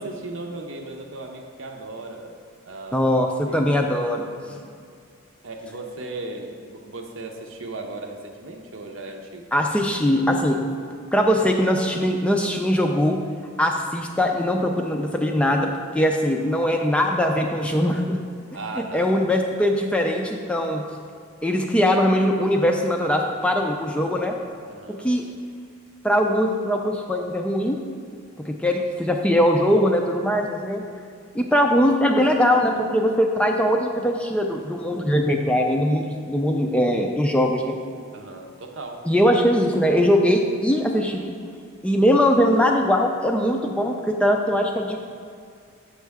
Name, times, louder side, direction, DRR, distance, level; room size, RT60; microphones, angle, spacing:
voice 1, 0.0-2.4 2.6-3.1 3.5-3.7 4.4-4.7 5.4-9.5 18.5-19.1 24.7-25.1 38.1-39.1, right 2 dB, 70° right, 3 dB, 0.7 m, -36 dB
voice 2, 2.9-4.3 9.5-10.6 11.1-13.2 13.6-18.2 18.9-20.8 21.4-24.4 25.0-25.2 26.0-27.8 28.5-30.8 31.3-37.8 39.1-41.3 41.8-45.0, equal, 5° left, 2 dB, 0.3 m, -21 dB
7.2 x 6.4 x 3.5 m, 2.3 s
head